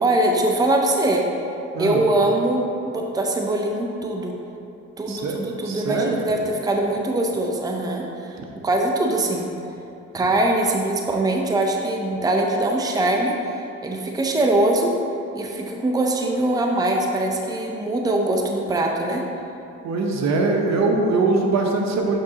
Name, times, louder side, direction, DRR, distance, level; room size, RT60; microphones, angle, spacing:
voice 1, 0.0-1.3 1.8-4.3 5.0-8.4 8.6-9.5 10.1-14.9 15.3-19.2, right 1 dB, 15° right, 1 dB, 0.6 m, -22 dB
voice 2, 5.1-5.4 5.6-6.2 8.4-8.5 19.8-22.2, right 3 dB, 65° right, 1 dB, 0.9 m, -22 dB
7.2 x 5.8 x 2.9 m, 2.8 s
cardioid pair, 90°, 30 cm